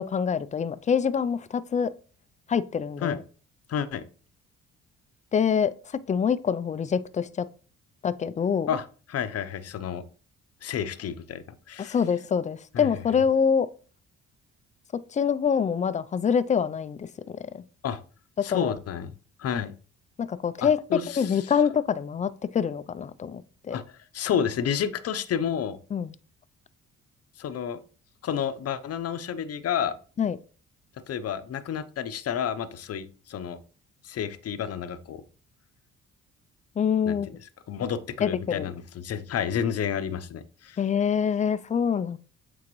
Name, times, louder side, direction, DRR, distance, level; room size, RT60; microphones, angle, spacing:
voice 1, 0.0-1.9 2.5-3.2 5.3-5.7 6.1-7.5 8.0-8.7 11.8-13.7 15.1-17.1 17.4-17.6 18.4-18.7 20.2-20.8 21.2-23.8 25.9-26.1 30.2-30.4 36.8-37.3 38.2-38.7 40.8-42.2, left 7 dB, 25° left, 0.4 m, -25 dB
voice 2, 3.7-4.0 8.7-10.1 10.6-12.0 12.7-12.9 17.8-18.0 18.4-19.1 19.4-19.7 20.6-21.5 23.7-23.8 24.1-25.8 27.4-27.8 28.2-30.0 31.1-33.6 34.0-35.2 37.0-37.2 37.7-40.8, left 8 dB, 55° left, 0.7 m, -30 dB
8.4 x 3.7 x 3.1 m
cardioid pair, 90°, 30 cm